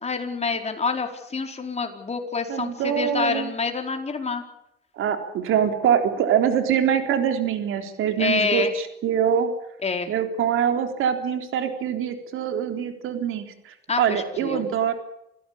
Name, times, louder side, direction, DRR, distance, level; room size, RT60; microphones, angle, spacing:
voice 1, 0.0-4.4 8.2-8.7 9.8-10.1 13.9-14.6, left 4 dB, 30° left, 4 dB, 4.6 m, -27 dB
voice 2, 2.5-3.5 5.0-9.5 10.1-14.9, right 8 dB, 80° right, 6 dB, 3.7 m, -24 dB
27.0 x 16.5 x 8.7 m, 0.80 s
cardioid pair, 95°, 21 cm